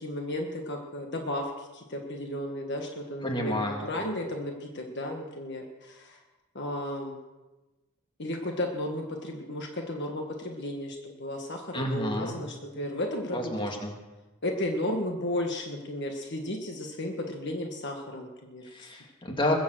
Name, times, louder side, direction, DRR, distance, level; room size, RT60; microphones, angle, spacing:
voice 1, 0.0-6.2 6.5-7.1 8.2-13.5 14.4-18.9, left 1 dB, 50° left, 2 dB, 1.5 m, -34 dB
voice 2, 3.2-3.8 11.7-12.3 13.3-13.9 18.7-19.5, left 1 dB, 20° left, 1 dB, 2.0 m, -30 dB
21.5 x 7.1 x 7.8 m, 1.1 s
head